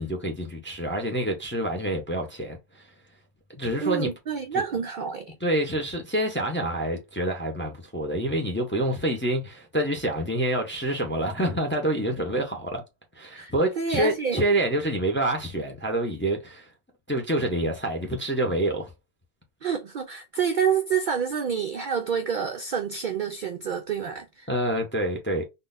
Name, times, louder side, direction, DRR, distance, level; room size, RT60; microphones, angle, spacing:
voice 1, 0.0-2.9 3.5-4.1 5.4-12.8 13.2-16.7 17.1-18.9 24.5-25.4, right 1 dB, 15° left, 0.5 m, -27 dB
voice 2, 3.8-5.4 13.3-14.4 19.6-24.5, right 7 dB, 60° right, 0.5 m, -28 dB
3.8 x 2.4 x 2.5 m
omnidirectional pair, 1.3 m